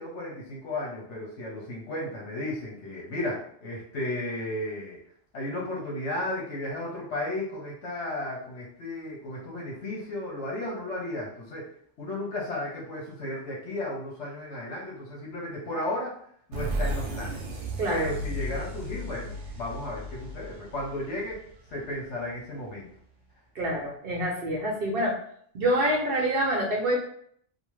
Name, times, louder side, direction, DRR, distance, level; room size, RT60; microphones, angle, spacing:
voice 1, 0.0-5.0 5.3-11.7 12.0-16.1 16.5-17.4 17.9-21.4 21.7-22.9, left 1 dB, 85° left, -4 dB, 1.1 m, -34 dB
sound 1, 16.5-22.0, right 1 dB, 85° right, 1.0 m, -34 dB
voice 2, 17.8-18.1 23.5-25.2 25.5-27.0, right 1 dB, 60° right, -2 dB, 0.8 m, -26 dB
2.9 x 2.1 x 3.0 m, 0.63 s
omnidirectional pair, 1.2 m